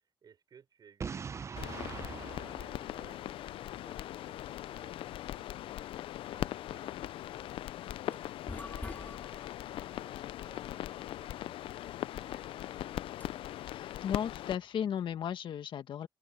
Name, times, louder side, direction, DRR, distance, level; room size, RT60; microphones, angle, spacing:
voice 1, 0.0-5.9 6.3-12.7, right 7 dB, 50° right, 6.4 m, -62 dB
Boom, 1.0-3.9, right 6 dB, 35° right, 0.5 m, -42 dB
sound 1, 1.6-14.6, left 13 dB, 85° left, 0.4 m, -40 dB
sound 2, 8.0-15.3, left 3 dB, 20° left, 3.7 m, -50 dB
voice 2, 13.7-16.1, left 9 dB, 65° left, 1.6 m, -35 dB
open air
cardioid pair, 120°, 9 cm